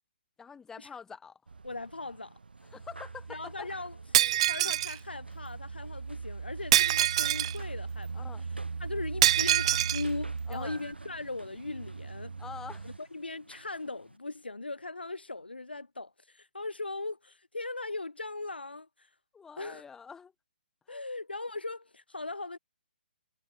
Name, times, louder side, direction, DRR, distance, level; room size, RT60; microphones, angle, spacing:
voice 1, 0.4-1.4 2.7-3.7 8.1-8.4 10.5-10.8 12.4-13.0 19.3-20.3 20.9-21.0, left 6 dB, 10° left, 5.3 m, -45 dB
sound 1, 1.5-13.0, right 4 dB, 65° right, 4.5 m, -40 dB
voice 2, 1.6-2.4 3.3-8.5 8.8-12.3 12.8-19.1 19.6-19.8 20.9-22.6, left 2 dB, 75° left, 1.4 m, -39 dB
sound 2, 2.6-14.2, right 1 dB, 85° right, 6.9 m, -54 dB
Shatter, 4.1-5.0 6.7-7.6 9.2-10.0, right 13 dB, 35° right, 0.5 m, -24 dB
figure-of-eight pair, 135°, 6 cm